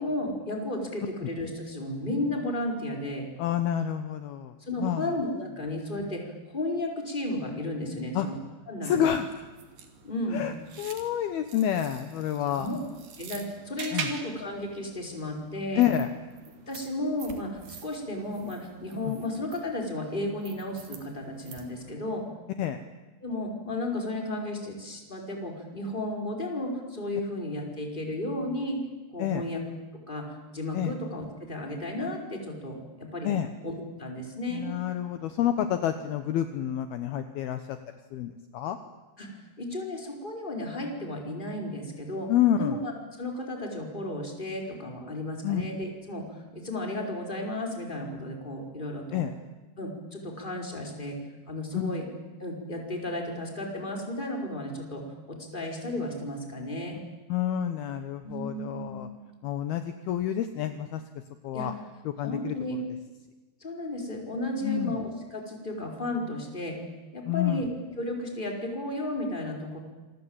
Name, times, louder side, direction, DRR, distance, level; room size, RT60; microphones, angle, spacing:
voice 1, 0.0-3.3 4.6-8.4 8.7-9.1 10.0-10.4 12.5-12.8 13.2-15.8 16.7-22.2 23.2-28.8 29.1-29.6 30.1-33.3 33.6-33.7 34.0-34.6 39.2-42.3 42.6-42.9 43.2-49.2 49.8-51.2 51.5-52.1 52.4-55.0 55.3-57.0 58.2-59.0 61.5-61.7 62.2-62.8 63.6-66.8 67.1-67.7 68.0-69.8, left 1 dB, 10° left, 1 dB, 4.8 m, -33 dB
voice 2, 3.4-5.1 8.1-8.3 8.8-9.3 10.3-12.7 13.9-14.1 15.7-16.1 19.1-19.2 22.6-22.8 29.2-29.4 30.7-30.9 33.2-33.5 34.5-37.8 38.1-38.8 42.3-42.8 45.4-45.6 49.1-49.3 51.7-51.9 57.3-59.1 59.4-61.0 61.4-61.7 62.1-62.6 64.6-65.0 67.3-67.6, left 10 dB, 70° left, 9 dB, 2.8 m, -28 dB
sound 1, 9.3-22.0, right 6 dB, 55° right, 3.8 m, -45 dB
27.5 x 23.5 x 8.9 m, 1.2 s
omnidirectional pair, 5.0 m